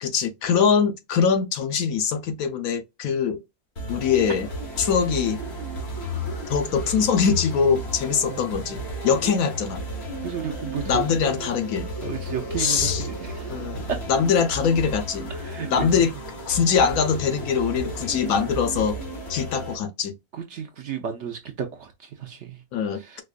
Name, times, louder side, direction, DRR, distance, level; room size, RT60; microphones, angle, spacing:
voice 1, 0.0-3.4 3.9-4.5 4.8-5.4 6.5-9.8 10.9-11.9 12.6-13.1 13.5-15.3 15.7-16.1 16.5-19.0 19.3-20.1 22.7-23.2, left 6 dB, 70° left, 1.1 m, -23 dB
sound 1, 3.8-19.8, equal, 45° left, 1.5 m, -33 dB
voice 2, 10.2-11.0 12.0-13.6 13.9-14.0 15.4-16.0 20.3-22.6 22.9-23.2, right 8 dB, 60° right, 0.8 m, -33 dB
4.4 x 2.3 x 2.4 m
omnidirectional pair, 1.6 m